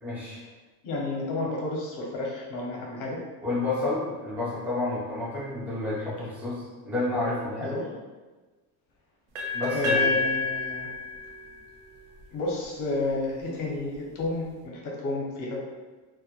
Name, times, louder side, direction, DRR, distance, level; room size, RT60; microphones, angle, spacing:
voice 1, 0.0-0.4 3.4-7.8 9.5-10.0, left 2 dB, 5° right, -8 dB, 0.4 m, -30 dB
voice 2, 0.8-3.2 7.6-7.9 9.7-10.9 12.3-15.6, left 2 dB, 45° left, -2 dB, 0.6 m, -31 dB
sound 1, 9.3-13.2, left 4 dB, 70° right, 0.6 m, -31 dB
2.1 x 2.1 x 2.8 m, 1.3 s
cardioid pair, 160°, 44 cm